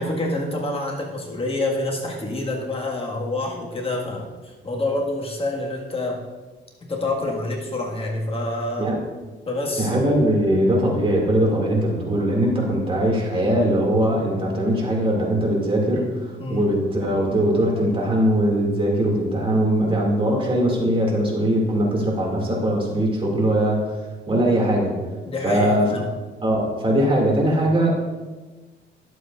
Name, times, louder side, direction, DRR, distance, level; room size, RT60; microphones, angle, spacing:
voice 1, 0.0-6.2 6.8-8.9 9.5-9.9 16.4-16.7 25.3-26.0, left 2 dB, 30° left, -2 dB, 1.9 m, -27 dB
voice 2, 9.8-16.1 16.5-24.0 24.3-24.9 25.4-26.0 26.4-27.9, right 1 dB, 25° right, -2 dB, 2.6 m, -21 dB
11.5 x 7.7 x 2.6 m, 1.3 s
cardioid pair, 90°, 20 cm